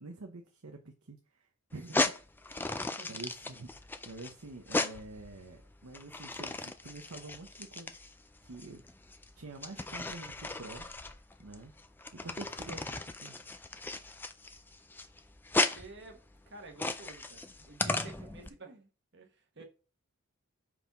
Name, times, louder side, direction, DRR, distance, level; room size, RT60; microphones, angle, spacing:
voice 1, 0.0-2.1 3.1-3.8 4.0-8.0 8.4-8.8 9.4-10.9 11.4-11.7 12.1-13.4 17.8-18.3 19.6-19.7, right 2 dB, 85° right, 0.9 m, -47 dB
sound 1, 1.7-18.5, left 2 dB, 10° left, 0.3 m, -36 dB
voice 2, 2.9-3.2 15.5-19.6, right 3 dB, 50° right, 1.3 m, -52 dB
5.5 x 4.9 x 4.0 m
head